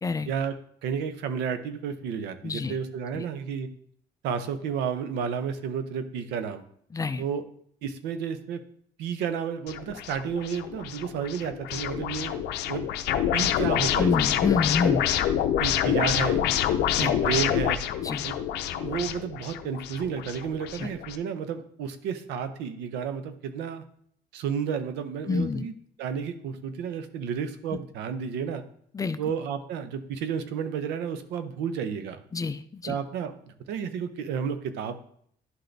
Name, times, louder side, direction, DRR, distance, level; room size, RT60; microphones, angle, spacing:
voice 1, 0.8-3.7 4.2-6.6 7.2-7.4 7.8-8.6 9.0-12.4 12.7-14.3 14.8-15.0 15.6-16.4 17.0-17.8 18.2-18.4 18.7-23.8 24.3-25.7 26.0-28.6 29.2-32.2 32.8-35.0, right 7 dB, 90° right, 10 dB, 0.7 m, -31 dB
voice 2, 2.4-2.7 3.1-3.2 6.9-7.2 14.0-15.0 17.0-17.1 18.0-18.3 20.8-20.9 25.3-25.7 28.9-29.2 32.3-33.0, left 4 dB, 20° left, 12 dB, 0.3 m, -28 dB
sound 1, 9.7-21.2, left 10 dB, 80° left, 0.5 m, -27 dB
11.0 x 3.9 x 3.3 m, 0.63 s
cardioid pair, 110°, 17 cm